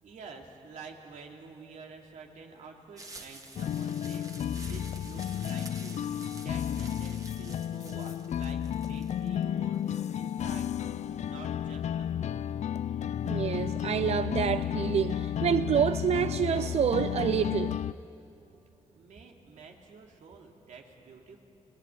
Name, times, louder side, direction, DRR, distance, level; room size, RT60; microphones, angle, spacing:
voice 1, 0.0-6.0 6.3-9.8 10.1-10.9 11.2-12.4 18.9-21.4, right 4 dB, 85° right, 2.7 m, -49 dB
sound 1, 3.0-10.0, right 2 dB, 25° right, 2.1 m, -49 dB
sound 2, 3.5-17.9, left 9 dB, 65° left, 0.5 m, -32 dB
voice 2, 13.2-17.8, right 8 dB, 55° right, 0.5 m, -28 dB
30.0 x 18.0 x 9.0 m
cardioid pair, 110°, 13 cm